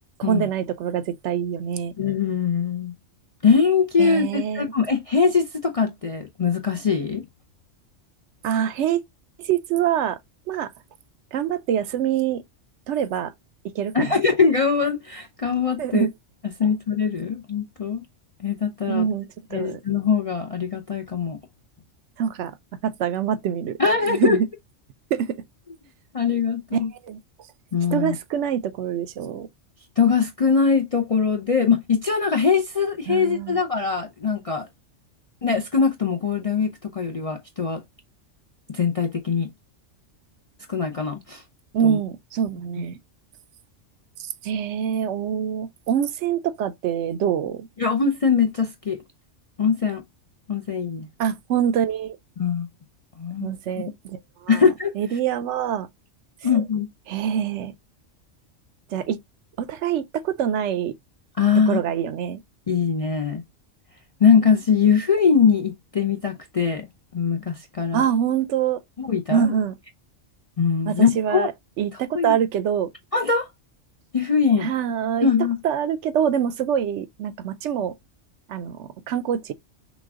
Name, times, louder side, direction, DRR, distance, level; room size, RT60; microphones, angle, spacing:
voice 1, 0.2-1.9 4.0-4.7 8.4-9.0 9.4-10.2 10.5-10.7 11.3-12.4 12.9-13.3 13.7-14.2 15.8-16.1 18.9-19.8 22.2-22.6 22.8-24.5 25.1-25.4 26.7-27.2 27.9-29.5 33.1-33.6 41.7-43.0 44.2-47.7 51.2-52.2 53.4-54.7 54.9-55.9 56.4-56.6 57.1-57.7 58.9-59.2 59.6-60.9 61.7-62.4 67.9-68.8 69.3-69.8 70.9-71.5 71.8-72.9 74.5-75.3 75.6-77.9 78.5-79.5, right 9 dB, 70° right, 0.8 m, -25 dB
voice 2, 2.0-2.9 3.4-7.2 13.9-16.1 16.6-18.0 18.4-19.1 19.5-21.4 23.8-24.4 26.1-26.9 27.7-28.2 30.0-34.7 35.4-37.8 38.7-39.5 40.7-41.4 41.8-42.0 47.8-49.0 49.6-50.0 50.5-51.1 52.4-52.7 53.2-53.5 54.5-54.9 56.4-56.9 61.4-61.8 62.7-63.4 64.2-66.9 67.1-68.0 69.0-69.5 70.6-71.5 72.1-72.3 73.1-73.5 74.1-74.7 75.2-75.6, left 6 dB, 45° left, 0.4 m, -22 dB
6.1 x 2.3 x 3.5 m
omnidirectional pair, 1.3 m